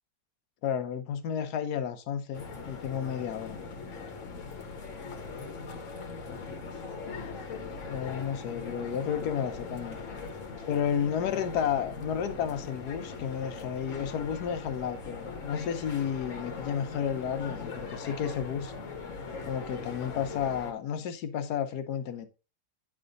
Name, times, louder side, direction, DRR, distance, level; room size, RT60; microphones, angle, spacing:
voice 1, 0.6-3.6 7.9-10.0 10.7-18.7 19.5-22.3, left 8 dB, 75° left, 1.3 m, -32 dB
sound 1, 2.3-20.7, left 4 dB, 55° left, 1.3 m, -40 dB
9.3 x 3.4 x 3.9 m
omnidirectional pair, 1.7 m